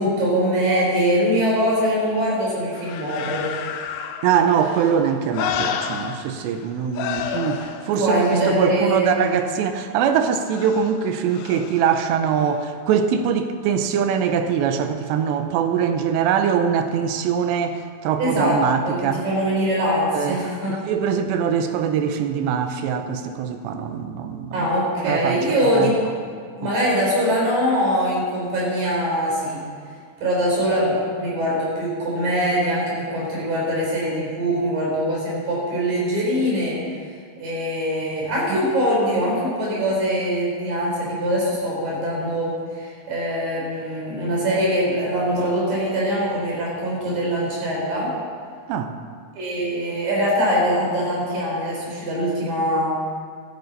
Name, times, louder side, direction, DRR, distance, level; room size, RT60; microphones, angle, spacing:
voice 1, 0.0-3.5 7.9-9.1 18.2-18.6 18.8-20.8 24.5-26.0 26.6-29.6 30.2-36.8 37.4-48.1 49.4-53.0, equal, 55° right, -5 dB, 5.3 m, -22 dB
sound 1, 2.7-6.7 6.9-9.5 10.5-12.0 12.5-12.6, left 8 dB, 85° left, 2.1 m, -31 dB
voice 2, 4.2-19.2 20.1-20.4 20.7-24.7 25.0-25.9 26.6-26.7 38.5-38.6 48.7-48.9, right 7 dB, 85° right, 7 dB, 3.0 m, -23 dB
13.5 x 13.5 x 4.0 m, 2.2 s
omnidirectional pair, 4.9 m